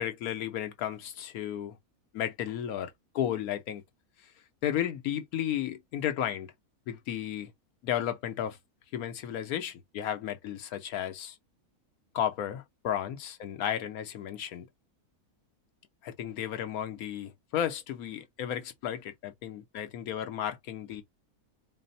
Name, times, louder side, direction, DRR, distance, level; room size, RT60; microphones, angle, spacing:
voice 1, 0.0-1.8 2.1-3.8 4.2-4.3 4.6-6.5 6.9-7.5 7.8-8.6 8.9-11.4 12.1-14.7 16.0-21.0, left 10 dB, 75° left, 1.1 m, -33 dB
4.1 x 2.0 x 4.0 m
omnidirectional pair, 1.6 m